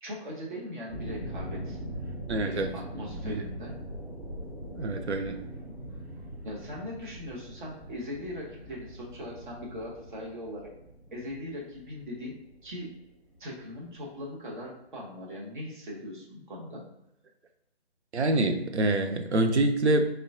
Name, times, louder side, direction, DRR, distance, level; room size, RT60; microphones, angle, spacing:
voice 1, 0.0-1.8 2.3-3.8 6.4-10.7 11.1-12.3 12.6-12.9 13.4-16.8, left 1 dB, 50° right, -3 dB, 0.9 m, -39 dB
sound 1, 0.9-13.5 13.7-14.1, equal, 15° right, 0.6 m, -41 dB
voice 2, 2.3-2.7 3.2-3.4 4.8-5.4 18.1-20.1, right 2 dB, 85° right, 6 dB, 0.5 m, -26 dB
3.6 x 2.2 x 2.4 m, 0.84 s
figure-of-eight pair, 145°, 33 cm